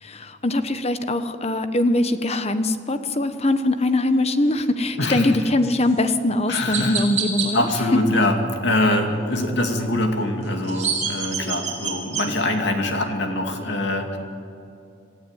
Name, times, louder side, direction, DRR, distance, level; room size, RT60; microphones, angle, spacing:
voice 1, 0.0-7.7, left 2 dB, 30° left, 9 dB, 1.1 m, -22 dB
voice 2, 5.0-5.4 6.5-7.0 7.5-14.2, left 1 dB, 60° left, 4 dB, 2.8 m, -23 dB
Chirp tweet, 5.8-6.0 6.7-7.5 10.4-12.3, right 7 dB, 35° right, 4.8 m, -26 dB
27.0 x 15.5 x 9.3 m, 2.6 s
head